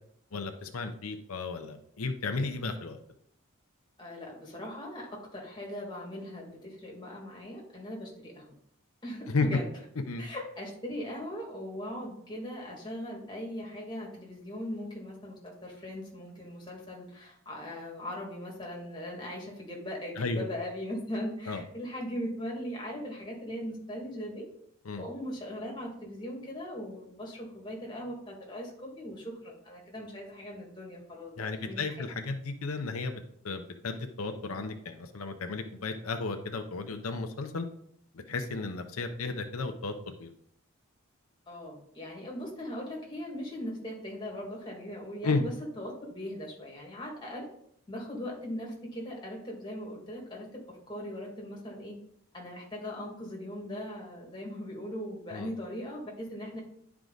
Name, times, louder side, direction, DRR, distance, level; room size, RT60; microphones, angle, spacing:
voice 1, 0.3-3.0 9.3-9.5 10.1-10.2 20.2-20.5 21.5-21.6 24.9-25.0 31.4-37.6 38.1-40.3 45.2-45.4 55.3-55.5, left 3 dB, 90° left, 6 dB, 0.7 m, -34 dB
voice 2, 4.0-8.6 9.0-9.7 10.2-24.5 25.0-31.8 38.7-38.8 41.5-45.5 45.8-47.5 47.9-52.0 52.3-56.6, left 1 dB, 20° left, -2 dB, 2.2 m, -39 dB
10.5 x 4.8 x 3.9 m, 0.69 s
head